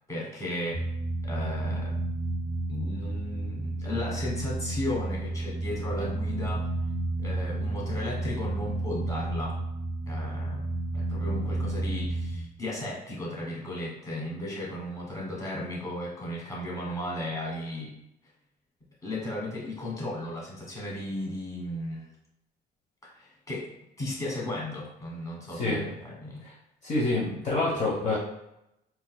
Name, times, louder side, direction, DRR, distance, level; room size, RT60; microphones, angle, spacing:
voice 1, 0.1-0.9 1.2-2.0 2.7-6.7 7.2-9.6 10.1-18.0 19.0-22.1 23.1-23.7 24.0-26.5, left 1 dB, 20° left, -4 dB, 1.4 m, -35 dB
sound 1, 0.7-12.4, right 2 dB, ahead, 0.7 m, -31 dB
voice 2, 26.8-28.2, left 2 dB, 45° left, -5 dB, 0.9 m, -27 dB
3.8 x 2.9 x 2.2 m, 0.84 s
cardioid pair, 110°, 17 cm